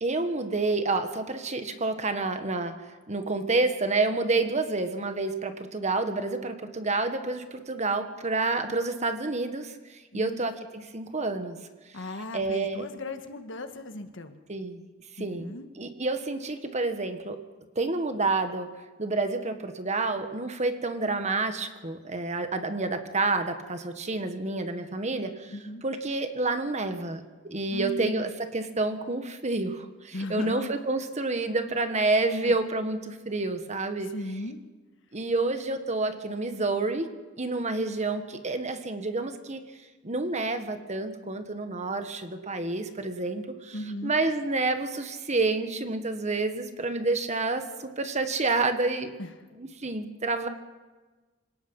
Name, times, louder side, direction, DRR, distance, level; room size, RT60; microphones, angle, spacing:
voice 1, 0.0-2.7 3.1-9.7 10.1-11.6 12.3-12.8 14.5-14.8 15.2-15.5 15.8-17.4 17.7-18.7 19.0-25.5 25.8-34.1 35.1-37.1 37.4-39.6 40.0-43.8 44.0-49.1 49.6-50.5, right 3 dB, 35° right, 8 dB, 1.5 m, -29 dB
voice 2, 11.9-14.4 15.2-15.7 25.5-25.8 27.7-28.3 30.1-30.7 32.4-32.5 34.0-34.6 43.7-44.2 49.2-49.5, left 1 dB, 65° left, 8 dB, 1.5 m, -37 dB
26.5 x 18.0 x 5.6 m, 1.3 s
head